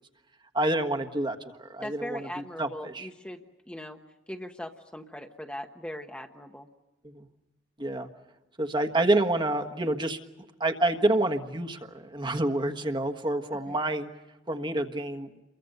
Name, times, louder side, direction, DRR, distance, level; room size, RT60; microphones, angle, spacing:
voice 1, 0.5-2.3 2.6-3.1 7.0-7.3 7.8-8.1 8.6-10.2 10.6-14.1 14.5-15.3, right 1 dB, 25° right, 5 dB, 1.4 m, -28 dB
voice 2, 1.8-4.0 4.3-6.7 13.7-13.8, left 1 dB, 5° left, 3 dB, 1.1 m, -40 dB
29.5 x 23.0 x 6.7 m, 1.1 s
head